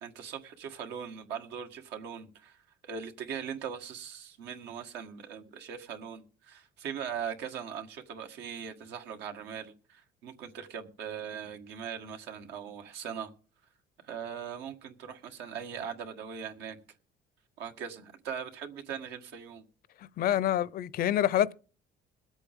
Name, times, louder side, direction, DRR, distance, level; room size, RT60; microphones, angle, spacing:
voice 1, 0.0-2.6 2.8-13.3 14.0-16.8 17.6-19.7, right 7 dB, 90° right, 1.7 m, -40 dB
voice 2, 20.2-21.5, left 11 dB, 60° left, 0.6 m, -26 dB
22.5 x 8.2 x 3.6 m
cardioid pair, 110°, 17 cm